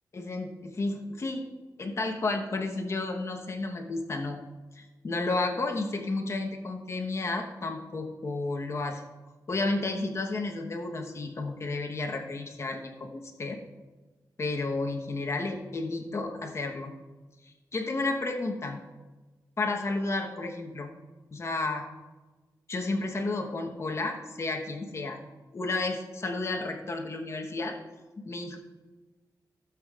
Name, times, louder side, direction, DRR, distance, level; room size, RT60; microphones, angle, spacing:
voice 1, 0.1-1.4 1.8-4.4 4.7-9.0 9.5-13.6 14.4-16.9 17.7-18.8 19.6-20.9 21.3-21.8 22.7-25.2 25.5-27.8 28.2-28.6, left 2 dB, 40° left, 2 dB, 1.1 m, -32 dB
16.0 x 7.3 x 2.5 m, 1.2 s
wide cardioid pair, 175°, 7 cm